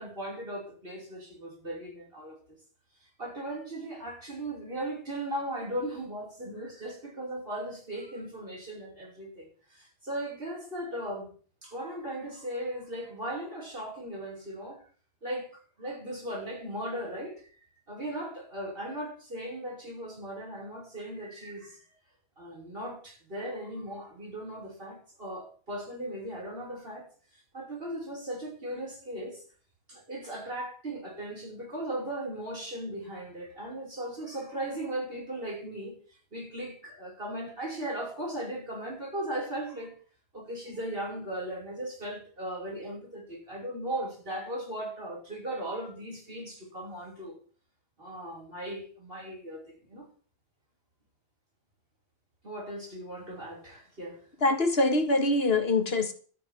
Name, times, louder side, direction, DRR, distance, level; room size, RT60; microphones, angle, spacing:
voice 1, 0.0-2.4 3.2-11.3 11.6-14.9 15.2-15.5 15.8-17.4 17.9-21.9 22.4-27.1 27.3-29.4 29.9-36.0 36.3-40.0 40.3-47.4 48.0-50.1 52.4-54.2, right 1 dB, 65° right, 5.7 m, -37 dB
voice 2, 54.4-56.1, left 2 dB, 75° left, 2.0 m, -24 dB
13.0 x 6.1 x 8.8 m
omnidirectional pair, 1.0 m